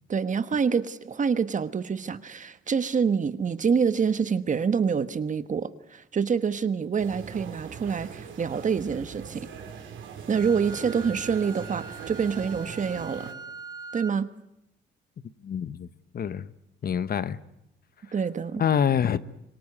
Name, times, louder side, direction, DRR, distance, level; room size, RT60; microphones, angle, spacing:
voice 1, 0.1-9.5 10.3-13.3 13.9-14.3 18.1-18.6, right 6 dB, 40° right, 1.3 m, -26 dB
sound 1, 7.0-13.3, right 7 dB, 75° right, 4.2 m, -41 dB
Wind instrument woodwind instrument, 10.3-14.2, right 4 dB, 20° right, 1.1 m, -42 dB
voice 2, 15.4-15.9 16.1-16.5 16.8-17.4 18.6-19.2, left 8 dB, 50° left, 1.0 m, -25 dB
25.5 x 18.5 x 9.8 m
cardioid pair, 90°, 20 cm